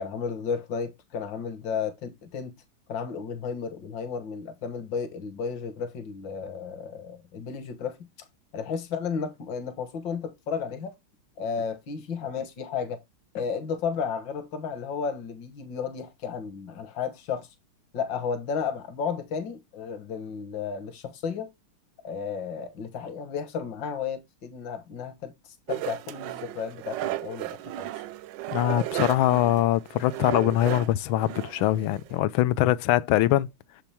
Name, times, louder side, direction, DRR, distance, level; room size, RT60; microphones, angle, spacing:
voice 1, 0.0-2.5 2.9-8.0 8.5-10.9 11.4-13.0 13.3-17.5 17.9-21.5 22.0-25.3 25.7-27.9, left 6 dB, 60° left, 2.0 m, -33 dB
sound 1, 25.7-32.2, right 16 dB, 75° right, 1.1 m, -34 dB
voice 2, 28.5-33.5, left 14 dB, 75° left, 1.3 m, -23 dB
7.0 x 5.9 x 3.4 m
omnidirectional pair, 2.3 m